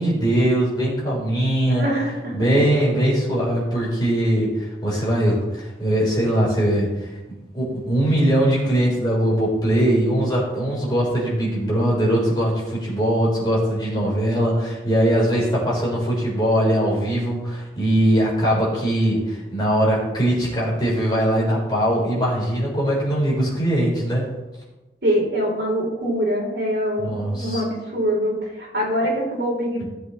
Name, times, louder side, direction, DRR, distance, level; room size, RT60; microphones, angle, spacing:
voice 1, 0.0-1.9 2.3-7.1 7.5-24.3 27.0-27.6, right 1 dB, 25° left, -6 dB, 4.1 m, -21 dB
voice 2, 1.7-2.4 25.0-29.8, equal, 75° right, -3 dB, 3.5 m, -24 dB
16.5 x 7.7 x 3.1 m, 1.1 s
head